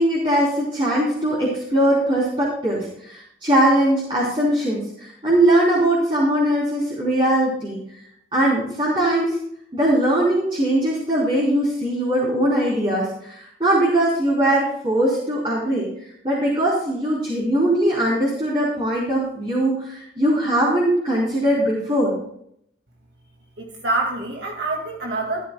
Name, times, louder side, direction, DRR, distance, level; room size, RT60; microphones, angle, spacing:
voice 1, 0.0-7.8 8.3-9.4 9.7-15.9 16.2-22.2, right 1 dB, 30° right, -6 dB, 3.5 m, -20 dB
voice 2, 23.6-25.4, right 2 dB, 75° right, 0 dB, 2.1 m, -26 dB
14.0 x 13.5 x 2.3 m, 0.69 s
head